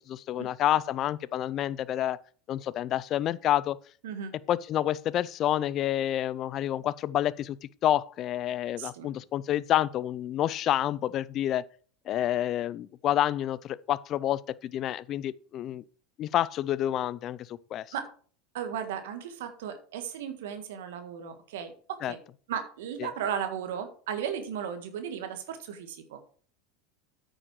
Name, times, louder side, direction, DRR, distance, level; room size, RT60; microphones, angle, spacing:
voice 1, 0.1-2.2 2.5-3.8 4.5-7.6 7.8-11.6 12.1-15.8 16.2-17.9 22.0-22.1 23.0-23.1, left 12 dB, 45° left, 0.4 m, -28 dB
voice 2, 8.8-9.1 17.9-18.1 18.5-22.2 22.5-26.2, right 8 dB, 75° right, 1.6 m, -35 dB
9.2 x 6.4 x 4.7 m
hypercardioid pair, 95°, 0 cm